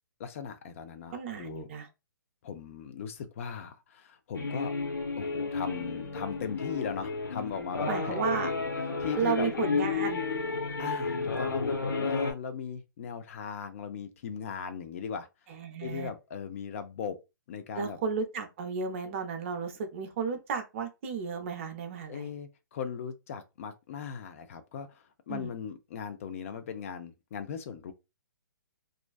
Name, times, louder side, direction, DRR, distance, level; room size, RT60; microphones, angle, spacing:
voice 1, 0.2-1.7 2.4-4.7 5.2-8.2 9.0-9.5 10.8-15.3 15.8-17.2 17.5-18.0 22.1-27.9, left 6 dB, 40° left, 0.4 m, -38 dB
voice 2, 1.1-1.9 7.9-8.5 9.2-10.2 15.5-16.1 17.8-22.3 25.3-25.5, right 6 dB, 40° right, 0.5 m, -33 dB
sound 1, 4.3-12.3, left 4 dB, 90° left, 0.7 m, -32 dB
2.4 x 2.2 x 2.3 m
hypercardioid pair, 145°, 11 cm